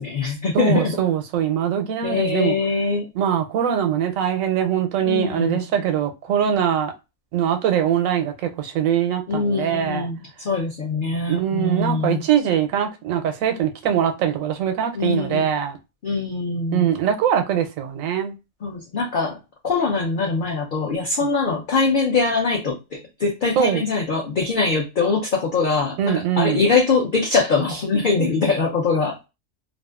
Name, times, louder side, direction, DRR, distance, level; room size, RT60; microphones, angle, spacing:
voice 1, 0.0-1.0 2.0-3.1 5.1-5.6 9.3-12.2 15.0-15.4 16.0-16.9 18.6-19.4 19.6-26.0 26.4-29.2, left 4 dB, 55° left, 0.6 m, -22 dB
voice 2, 0.5-2.6 3.1-6.9 7.3-10.1 11.3-15.8 16.7-18.4 23.6-23.8 26.0-26.7, right 9 dB, 90° right, 1.0 m, -22 dB
2.5 x 2.3 x 2.3 m
omnidirectional pair, 1.3 m